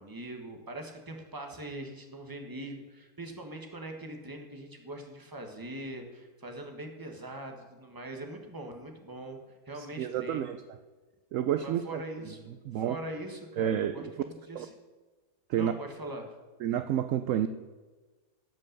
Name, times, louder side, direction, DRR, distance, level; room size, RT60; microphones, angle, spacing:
voice 1, 0.0-9.4 9.7-10.5 11.6-14.7 15.6-16.3, right 1 dB, 15° right, 3 dB, 1.3 m, -42 dB
voice 2, 10.0-10.6 11.3-12.0 12.7-13.0 13.6-14.0 14.6-14.7 15.5-15.7 16.6-17.5, right 10 dB, 70° right, 10 dB, 0.8 m, -29 dB
15.0 x 5.4 x 6.6 m, 1.3 s
omnidirectional pair, 1.6 m